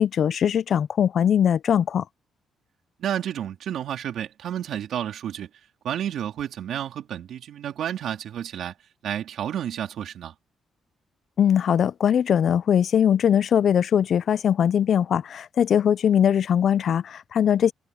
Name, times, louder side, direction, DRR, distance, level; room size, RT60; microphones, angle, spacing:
voice 1, 0.0-2.0 11.4-17.7, left 9 dB, 60° left, 0.6 m, -21 dB
voice 2, 3.0-5.5 5.8-8.8 9.0-10.3, right 10 dB, 70° right, 3.7 m, -31 dB
cardioid pair, 90°, 0 cm